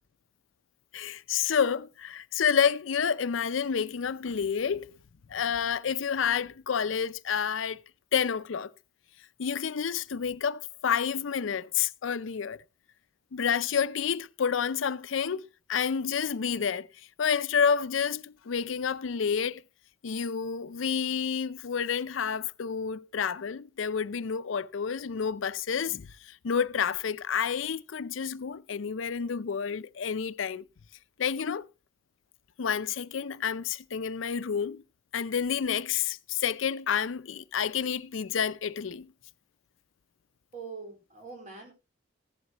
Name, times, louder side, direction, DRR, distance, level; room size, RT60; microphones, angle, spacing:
voice 1, 0.9-4.9 5.3-7.8 8.1-8.7 9.4-12.6 13.3-16.9 17.2-19.6 20.0-30.6 31.2-31.7 32.6-34.8 35.1-39.1, left 7 dB, 90° left, 0.5 m, -29 dB
voice 2, 40.5-41.7, right 4 dB, 40° right, 4.1 m, -43 dB
15.0 x 11.5 x 2.9 m
head